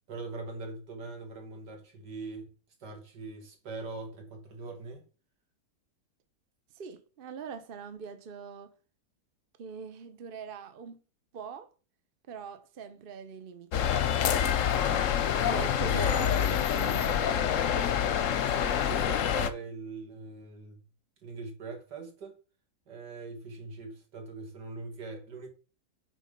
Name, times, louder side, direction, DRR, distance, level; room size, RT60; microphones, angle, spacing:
voice 1, 0.1-2.5 2.8-5.0 15.5-16.3 18.3-20.8 21.2-22.3 22.9-25.5, right 3 dB, 85° right, 2.5 m, -42 dB
voice 2, 6.7-8.7 9.6-11.0 11.3-11.7 12.3-15.2 15.4-18.0, right 6 dB, 40° right, 0.9 m, -42 dB
sound 1, 13.7-19.5, left 9 dB, 60° left, 0.9 m, -27 dB
8.4 x 4.0 x 5.3 m
omnidirectional pair, 1.8 m